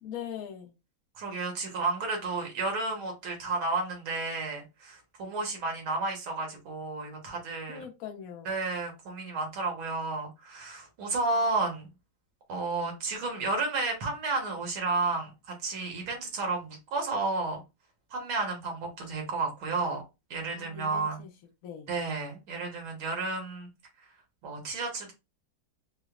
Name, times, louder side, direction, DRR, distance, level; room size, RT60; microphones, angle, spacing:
voice 1, 0.0-0.7 7.7-8.5 20.5-21.3 21.6-21.9, left 8 dB, 70° left, 0.8 m, -41 dB
voice 2, 1.2-7.8 8.5-11.9 12.5-17.6 18.1-20.0 20.3-21.2 21.9-23.7 24.0-24.1 24.4-25.1, right 3 dB, 70° right, 1.9 m, -32 dB
4.9 x 2.0 x 2.4 m
omnidirectional pair, 2.3 m